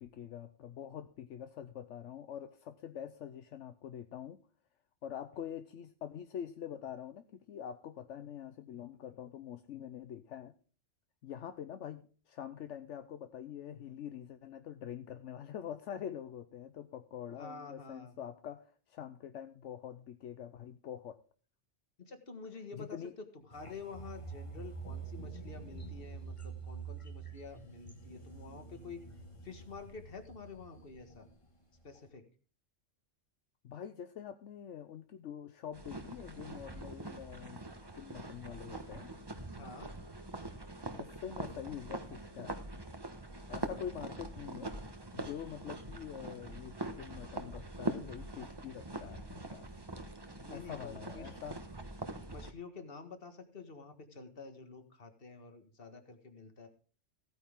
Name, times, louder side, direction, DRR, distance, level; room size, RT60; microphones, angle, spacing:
voice 1, 0.0-4.4 5.0-10.5 11.2-21.2 22.8-23.1 33.6-37.6 37.9-39.1 40.9-42.6 43.5-44.7 45.1-49.7 50.5-51.6, left 9 dB, 75° left, 9 dB, 1.1 m, -45 dB
voice 2, 17.4-18.1 22.0-23.0 23.5-29.0 29.4-31.3 31.8-32.2 39.6-39.9 50.4-51.4 52.3-56.7, left 4 dB, 50° left, 7 dB, 1.9 m, -49 dB
sound 1, 23.5-31.4 31.8-32.0, right 5 dB, 25° left, 1.4 m, -47 dB
sound 2, 35.7-52.5, right 2 dB, 20° right, 1.2 m, -43 dB
15.5 x 9.2 x 3.7 m, 0.39 s
omnidirectional pair, 1.2 m